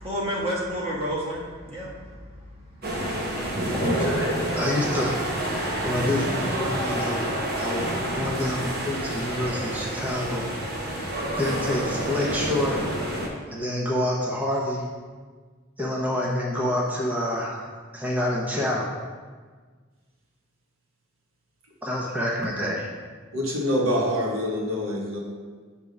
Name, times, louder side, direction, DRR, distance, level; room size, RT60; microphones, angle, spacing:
voice 1, 0.0-2.5 2.8-3.5, equal, 30° right, -5 dB, 1.5 m, -31 dB
sound 1, 2.8-13.3, right 1 dB, 50° right, 1.1 m, -28 dB
voice 2, 3.7-4.3 4.5-5.2 5.8-7.9 8.2-10.5 10.8-11.0 11.4-12.9 13.5-14.8 15.8-18.9 21.8-22.9, left 1 dB, 10° right, -4 dB, 0.7 m, -27 dB
voice 3, 23.3-25.2, equal, 85° right, -2 dB, 1.3 m, -26 dB
7.1 x 3.6 x 5.2 m, 1.5 s
head